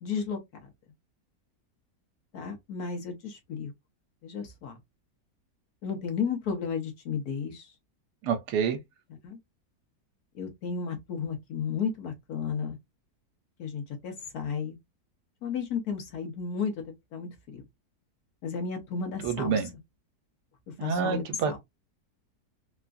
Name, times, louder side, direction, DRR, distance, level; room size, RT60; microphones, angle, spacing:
voice 1, 0.0-0.4 2.3-3.7 4.2-4.8 5.8-7.7 9.2-9.4 10.3-12.8 13.6-14.8 15.4-16.8 17.1-17.6 18.4-19.6 20.8-21.6, left 6 dB, 70° left, 1.4 m, -33 dB
voice 2, 8.2-8.8 19.2-19.7 20.8-21.6, right 6 dB, 80° right, 1.3 m, -27 dB
3.5 x 2.4 x 2.5 m
omnidirectional pair, 1.8 m